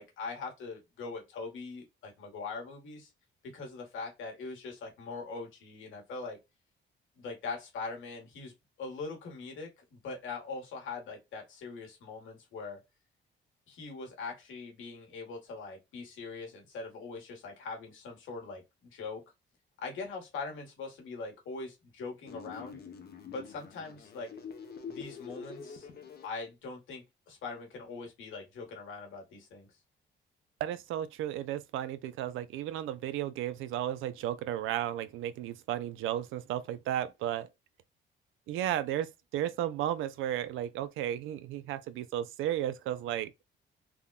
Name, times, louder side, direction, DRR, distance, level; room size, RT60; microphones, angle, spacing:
voice 1, 0.0-3.1 3.4-6.4 7.2-8.5 8.8-12.8 13.7-19.2 19.8-22.8 23.3-24.3 24.9-25.9 26.2-29.7, left 4 dB, 80° left, 1.4 m, -42 dB
sound 1, 22.3-26.3, left 6 dB, 50° left, 0.7 m, -45 dB
voice 2, 30.6-37.5 38.5-43.6, right 11 dB, 85° right, 0.4 m, -34 dB
3.5 x 2.2 x 2.3 m
cardioid pair, 90°, 20 cm